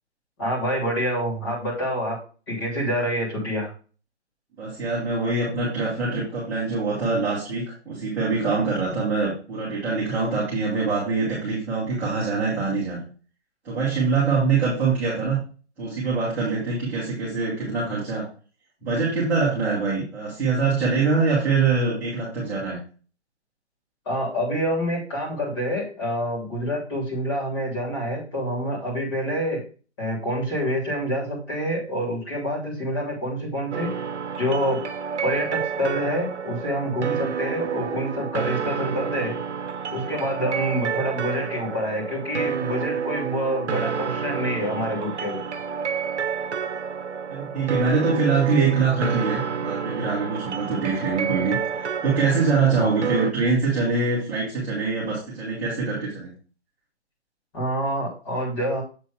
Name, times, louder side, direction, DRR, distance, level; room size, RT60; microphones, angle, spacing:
voice 1, 0.4-2.2 2.5-3.7 24.0-29.6 30.0-34.0 34.4-34.8 35.2-39.3 39.9-45.4 52.8-52.9 57.5-58.8, equal, 25° left, -3 dB, 3.0 m, -27 dB
voice 2, 4.6-13.1 13.6-15.4 15.8-18.2 18.8-22.8 47.3-56.3, right 4 dB, 5° right, -12 dB, 1.6 m, -24 dB
sound 1, 33.7-53.3, right 7 dB, 80° right, 0.9 m, -29 dB
7.5 x 4.0 x 4.8 m, 0.37 s
hypercardioid pair, 165°, 34 cm